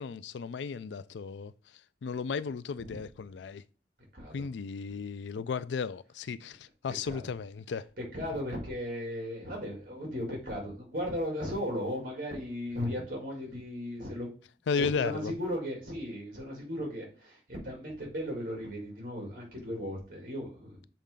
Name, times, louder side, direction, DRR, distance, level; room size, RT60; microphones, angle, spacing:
voice 1, 0.0-1.5 2.0-3.6 4.3-7.9 14.7-15.3, left 5 dB, 85° left, 0.4 m, -34 dB
voice 2, 4.1-4.5 7.0-7.3 8.0-14.3 14.8-20.9, equal, 50° right, 2.9 m, -36 dB
6.9 x 4.2 x 3.7 m
head